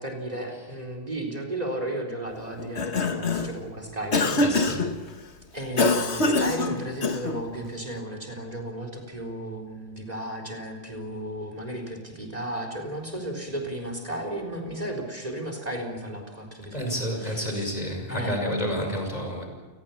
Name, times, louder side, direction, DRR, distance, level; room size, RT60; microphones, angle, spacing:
voice 1, 0.0-4.4 5.5-17.7 18.1-18.4, right 1 dB, 35° right, 4 dB, 4.1 m, -34 dB
Cough, 2.6-3.6 4.1-4.9 5.8-7.4, left 2 dB, 85° left, 1.8 m, -24 dB
voice 2, 16.7-19.5, equal, 40° left, 3 dB, 5.8 m, -29 dB
29.5 x 21.0 x 7.2 m, 1.4 s
omnidirectional pair, 1.1 m